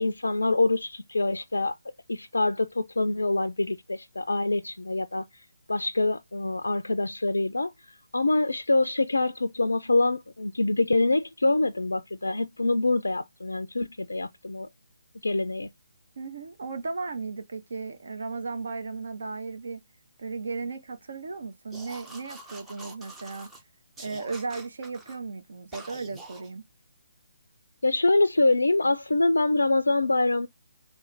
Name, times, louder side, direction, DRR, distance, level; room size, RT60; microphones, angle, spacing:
voice 1, 0.0-1.8 2.1-5.2 5.7-7.7 8.1-14.7 15.2-15.7 27.8-30.5, left 2 dB, 75° left, 0.3 m, -25 dB
voice 2, 16.2-19.8 20.2-23.5 24.0-26.7, right 4 dB, 55° right, 0.7 m, -35 dB
sound 1, 21.7-23.6 24.0-25.2 25.7-26.5, right 2 dB, 5° right, 0.5 m, -46 dB
3.2 x 2.1 x 3.2 m
figure-of-eight pair, 145°, 0 cm